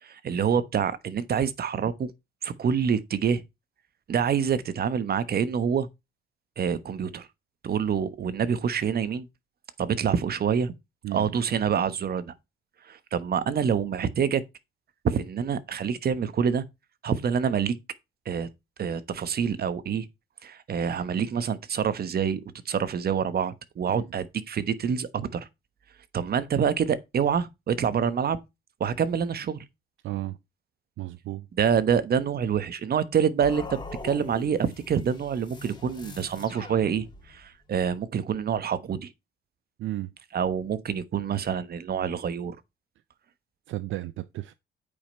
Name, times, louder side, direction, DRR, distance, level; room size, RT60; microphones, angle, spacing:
voice 1, 0.0-2.1 2.4-3.4 4.1-5.9 6.6-7.3 7.6-9.3 9.8-10.7 11.1-12.3 12.8-14.4 15.0-16.6 17.0-17.8 18.2-18.5 18.8-20.1 20.4-25.5 26.1-28.4 28.8-29.6 31.6-33.8 34.0-39.1 40.3-42.6, right 7 dB, 50° right, 1.2 m, -26 dB
voice 2, 30.0-30.4 31.0-31.5 39.8-40.1 43.7-44.5, right 15 dB, 75° right, 0.6 m, -33 dB
sound 1, 33.4-37.5, left 3 dB, 25° left, 2.5 m, -42 dB
8.6 x 5.4 x 4.3 m
cardioid pair, 90°, 20 cm